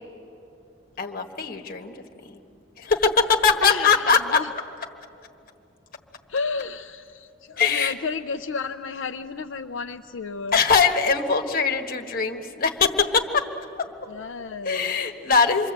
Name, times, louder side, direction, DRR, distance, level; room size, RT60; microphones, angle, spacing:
voice 1, 1.0-1.9 2.8-4.4 7.6-7.9 10.5-13.4 13.8-13.9 14.6-15.7, left 5 dB, 50° left, 4 dB, 1.4 m, -21 dB
voice 2, 3.6-4.5 6.3-10.6 14.1-15.0, left 4 dB, 75° left, 6 dB, 0.6 m, -32 dB
28.0 x 23.0 x 8.0 m, 2.8 s
head